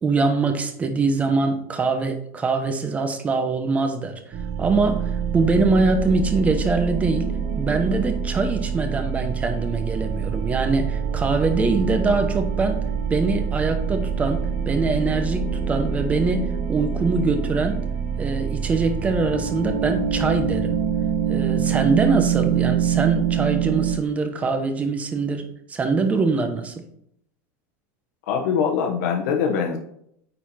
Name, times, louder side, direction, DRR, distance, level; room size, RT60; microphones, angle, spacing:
voice 1, 0.0-4.1 4.6-7.3 7.6-17.9 18.2-20.8 21.3-26.7, right 3 dB, 15° right, 7 dB, 0.9 m, -23 dB
sound 1, 4.3-24.0, right 7 dB, 40° right, 1.1 m, -25 dB
voice 2, 28.3-29.8, left 6 dB, 70° left, 2 dB, 1.0 m, -23 dB
9.3 x 4.2 x 4.2 m, 0.72 s
supercardioid pair, 155°, 9 cm